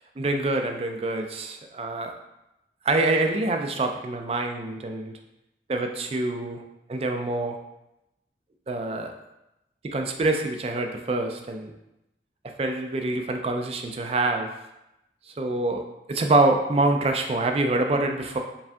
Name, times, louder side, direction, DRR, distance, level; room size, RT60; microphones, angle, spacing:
voice 1, 0.2-2.1 2.8-5.2 5.7-6.6 6.9-7.6 8.7-9.1 9.8-11.7 12.6-14.5 15.3-15.8 16.1-18.4, right 2 dB, 35° right, 4 dB, 0.4 m, -25 dB
4.7 x 3.4 x 2.6 m, 0.91 s
head